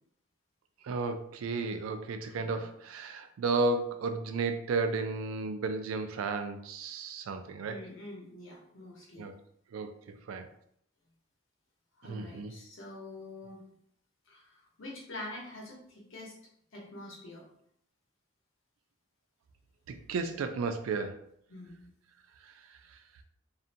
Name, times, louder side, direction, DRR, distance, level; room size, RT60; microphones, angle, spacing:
voice 1, 0.8-7.8 9.2-9.3 9.7-10.5 12.0-12.5 19.9-21.2 22.4-22.5, right 3 dB, 90° right, 0.3 m, -33 dB
voice 2, 7.7-9.2 12.0-13.6 14.3-16.4 16.7-17.4 21.5-21.9, left 1 dB, 75° left, 0.8 m, -46 dB
2.5 x 2.1 x 2.7 m
head